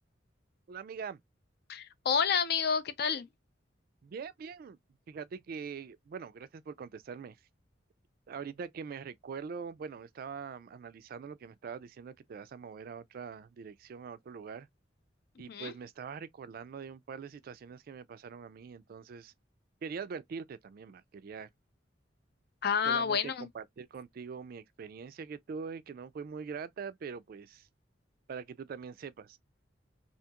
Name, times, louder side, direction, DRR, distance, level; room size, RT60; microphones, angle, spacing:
voice 1, 0.7-1.2 4.0-4.8 5.1-7.4 8.3-14.7 15.4-19.3 19.8-21.5 22.9-27.7 28.3-29.4, right 6 dB, 55° right, 0.3 m, -43 dB
voice 2, 1.7-3.3 15.5-15.7 22.6-23.5, left 6 dB, 60° left, 0.5 m, -29 dB
2.8 x 2.8 x 2.2 m
head